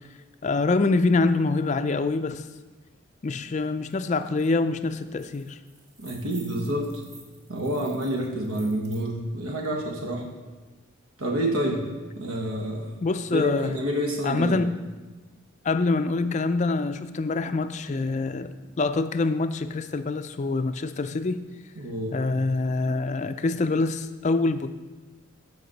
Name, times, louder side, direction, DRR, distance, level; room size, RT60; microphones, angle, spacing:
voice 1, 0.4-2.4 3.2-5.6 13.0-13.8 14.2-14.7 15.6-21.4 22.1-24.7, left 3 dB, 35° left, 10 dB, 0.4 m, -25 dB
sound 1, 3.9-4.0 4.3-4.5 4.9-9.0, right 2 dB, 15° right, 1.3 m, -50 dB
voice 2, 6.0-6.9 7.5-10.3 11.2-11.8 12.1-12.9 13.3-14.6 21.7-22.2, right 1 dB, 90° right, 1 dB, 1.4 m, -28 dB
14.0 x 5.2 x 4.0 m, 1.2 s
head